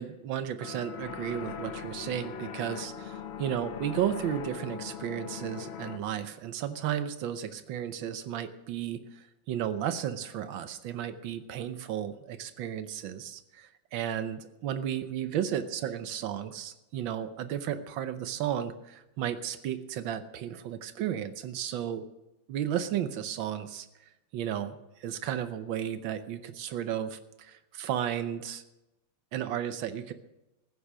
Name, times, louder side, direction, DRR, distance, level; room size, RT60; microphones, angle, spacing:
voice 1, 0.0-22.0 22.5-23.9 24.3-28.6 29.3-30.1, right 10 dB, 85° right, 11 dB, 1.5 m, -34 dB
sound 1, 0.6-6.0, left 7 dB, 70° left, 0.6 m, -40 dB
15.0 x 10.0 x 6.2 m, 0.95 s
omnidirectional pair, 2.1 m